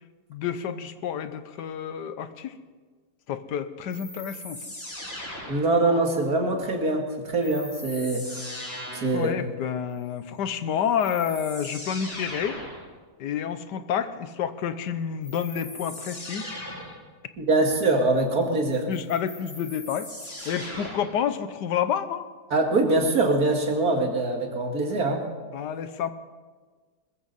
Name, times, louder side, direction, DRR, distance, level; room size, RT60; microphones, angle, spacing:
voice 1, 0.3-2.5 3.3-4.6 9.1-12.6 13.2-16.6 18.9-20.1 20.4-22.3 25.5-26.1, left 8 dB, 80° left, 11 dB, 1.5 m, -29 dB
sound 1, 3.9-5.9 7.4-9.2 10.5-10.6 11.0-12.8 15.2-17.0 18.7-21.2, left 1 dB, 35° left, 4.3 m, -39 dB
voice 2, 5.5-8.2 9.0-9.3 17.4-18.9 22.5-25.2, right 2 dB, 60° right, 2 dB, 2.6 m, -23 dB
21.0 x 14.5 x 4.1 m, 1.4 s
omnidirectional pair, 1.8 m